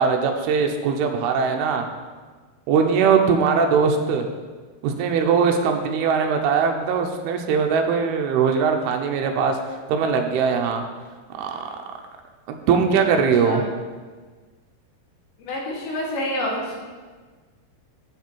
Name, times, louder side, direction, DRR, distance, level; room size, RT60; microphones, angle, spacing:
voice 1, 0.0-1.8 2.7-4.3 4.8-10.9 11.3-11.7 12.5-13.6, right 6 dB, 85° right, 4 dB, 2.6 m, -21 dB
voice 2, 15.4-16.8, left 1 dB, 70° left, -3 dB, 3.2 m, -28 dB
6.9 x 5.9 x 4.5 m, 1.4 s
omnidirectional pair, 4.5 m